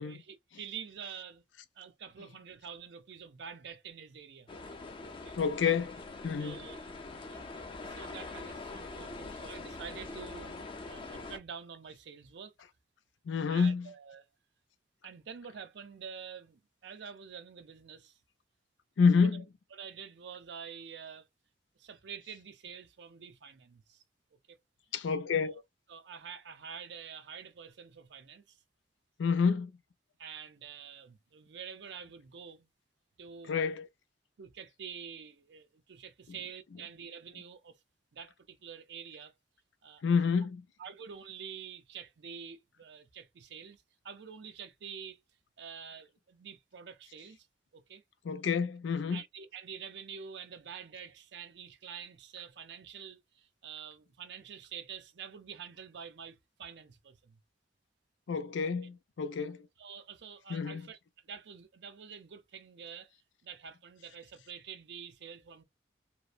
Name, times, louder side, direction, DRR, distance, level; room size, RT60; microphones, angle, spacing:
voice 1, 0.0-1.4 1.8-4.5 5.2-5.3 6.4-6.9 7.3-12.5 13.5-14.3 15.0-18.2 19.7-21.3 21.8-24.0 24.5-24.6 25.3-25.6 25.9-28.6 30.2-32.7 33.2-33.7 34.4-37.8 38.1-39.3 39.8-40.0 40.8-45.2 45.6-47.5 47.7-48.0 49.1-57.4 59.8-61.0 61.2-63.1 63.4-65.6, right 7 dB, 70° right, 0.5 m, -47 dB
sound 1, 4.5-11.4, left 3 dB, 30° left, 0.4 m, -44 dB
voice 2, 5.4-6.6 13.3-13.9 19.0-19.4 24.9-25.6 29.2-29.7 33.5-33.9 40.0-40.6 48.2-49.2 58.3-59.6 60.5-60.9, left 5 dB, 90° left, 0.4 m, -29 dB
2.9 x 2.0 x 2.3 m
head